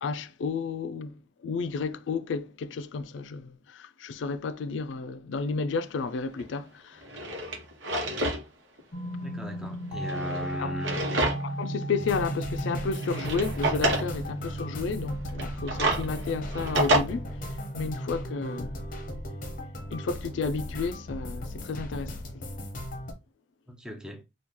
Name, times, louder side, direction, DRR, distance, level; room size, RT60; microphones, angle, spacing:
voice 1, 0.0-7.0 10.6-10.8 11.4-17.3 17.8-18.8 19.9-22.4, left 4 dB, 80° left, 0.4 m, -32 dB
Drawer open or close, 6.4-6.5 7.0-8.4 8.8-8.9 9.9-11.6 12.0-12.1 12.9-14.1 15.3-17.0, right 1 dB, 80° right, 0.9 m, -28 dB
sound 1, 8.9-21.5, right 1 dB, 30° left, 1.0 m, -37 dB
voice 2, 9.2-11.0 23.7-24.2, equal, 5° right, 0.6 m, -39 dB
sound 2, 12.0-23.1, left 1 dB, 50° left, 0.7 m, -38 dB
3.0 x 2.3 x 3.6 m
head